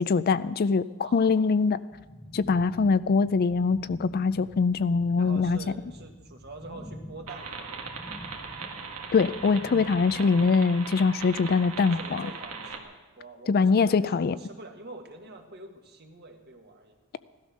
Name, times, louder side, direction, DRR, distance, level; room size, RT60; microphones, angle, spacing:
voice 1, 0.0-1.8 2.3-5.6 9.1-12.3 13.5-14.4, left 4 dB, 45° left, 15 dB, 0.4 m, -23 dB
voice 2, 1.0-1.4 5.2-8.0 9.9-10.0 11.8-17.0, right 2 dB, 50° right, 4 dB, 1.8 m, -46 dB
sound 1, 1.9-10.5, equal, 15° left, 0.8 m, -46 dB
sound 2, 7.3-12.8, right 5 dB, 80° right, 1.8 m, -39 dB
16.5 x 12.5 x 6.3 m, 1.2 s
head